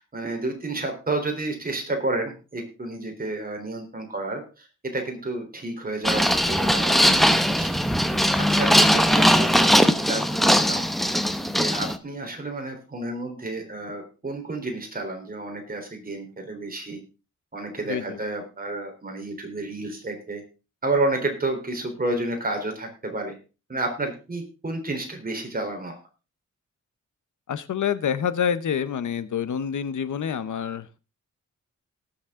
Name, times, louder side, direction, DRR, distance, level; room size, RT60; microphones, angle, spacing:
voice 1, 0.0-7.7 8.4-10.9 11.5-17.0 17.5-20.4 20.8-23.4 23.7-26.0, right 2 dB, 30° right, 3 dB, 3.7 m, -30 dB
sound 1, 6.0-12.0, equal, ahead, 0.9 m, -20 dB
voice 2, 17.8-18.2 27.5-31.0, left 8 dB, 80° left, 14 dB, 1.0 m, -27 dB
18.0 x 7.2 x 3.7 m, 0.33 s
wide cardioid pair, 135°, 30 cm